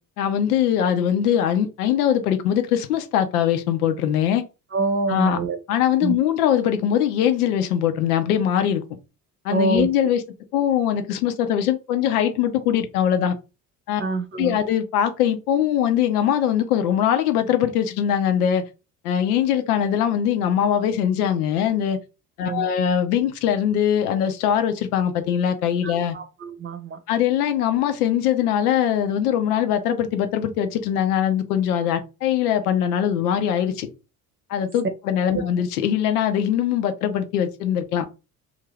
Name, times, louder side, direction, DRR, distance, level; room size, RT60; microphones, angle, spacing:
voice 1, 0.2-4.4 5.1-5.4 5.7-8.8 9.4-10.2 10.5-13.4 13.9-14.0 14.4-18.7 19.0-22.0 22.4-26.2 27.1-33.9 34.5-38.0, left 9 dB, 80° left, 0.6 m, -21 dB
voice 2, 4.7-5.6 6.0-6.1 9.5-9.9 14.0-14.6 22.4-22.7 25.8-27.0 35.3-35.4, right 4 dB, 25° right, 0.8 m, -25 dB
2.5 x 2.4 x 3.1 m
hypercardioid pair, 60°, 45 cm